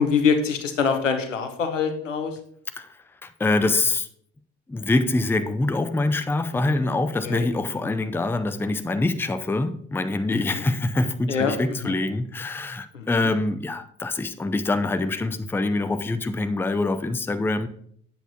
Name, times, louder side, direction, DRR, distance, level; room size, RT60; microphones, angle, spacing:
voice 1, 0.0-2.4 6.7-6.8 7.2-7.5 7.8-7.9 10.3-10.6 11.3-11.9 12.9-13.3, left 5 dB, 90° left, 0.9 m, -25 dB
voice 2, 2.8-4.1 4.7-17.7, left 2 dB, 5° left, 0.5 m, -25 dB
8.3 x 7.8 x 2.8 m
figure-of-eight pair, 50°, 36 cm